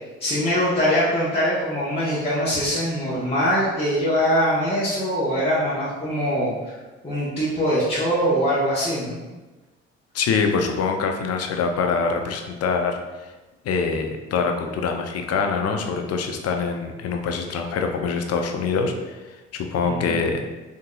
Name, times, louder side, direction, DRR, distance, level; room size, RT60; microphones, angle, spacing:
voice 1, 0.2-6.8 7.0-9.2 19.8-20.2, equal, 20° left, -10 dB, 1.1 m, -22 dB
voice 2, 10.1-13.3 13.6-20.4, left 5 dB, 55° left, 4 dB, 0.5 m, -24 dB
3.7 x 2.6 x 2.3 m, 1.2 s
hypercardioid pair, 50°, 30 cm